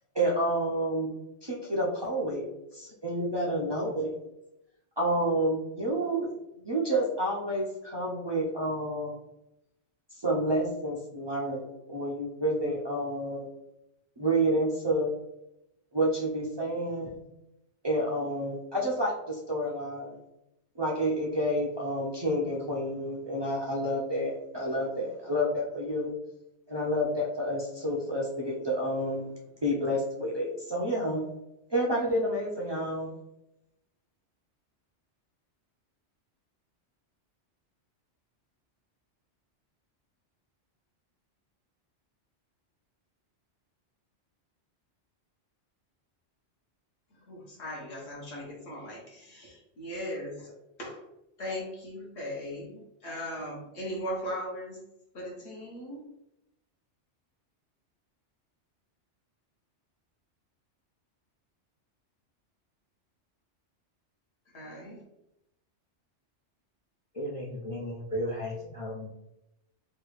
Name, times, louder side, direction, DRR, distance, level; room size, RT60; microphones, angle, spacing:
voice 1, 0.1-2.5 2.7-4.1 5.0-9.1 10.2-13.5 14.2-15.1 15.9-17.1 17.8-20.2 20.8-26.1 26.7-29.3 29.6-31.2 31.7-33.1, right 1 dB, 45° right, -4 dB, 0.3 m, -29 dB
voice 2, 47.3-50.5 50.8-51.0 51.4-54.8 55.1-56.0 64.5-65.0, equal, 70° left, -3 dB, 1.1 m, -38 dB
voice 3, 67.1-69.1, equal, 55° left, -4 dB, 0.3 m, -35 dB
3.3 x 2.4 x 3.0 m, 0.87 s
omnidirectional pair, 1.2 m